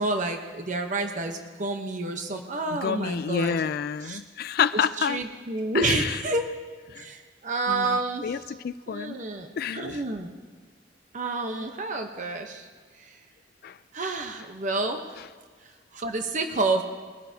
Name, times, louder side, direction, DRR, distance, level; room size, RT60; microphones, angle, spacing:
voice 1, 0.0-3.6 4.0-4.2 5.0-6.5 6.9-8.3 8.9-10.3 11.1-12.7 13.0-13.1 13.9-15.0 15.9-16.8, right 2 dB, 45° right, 5 dB, 0.9 m, -29 dB
voice 2, 2.7-5.2 5.7-6.2 6.9-7.0 7.7-9.2 9.6-10.0 13.6-13.8, left 7 dB, 55° left, 15 dB, 0.3 m, -29 dB
22.0 x 14.5 x 2.8 m, 1.5 s
head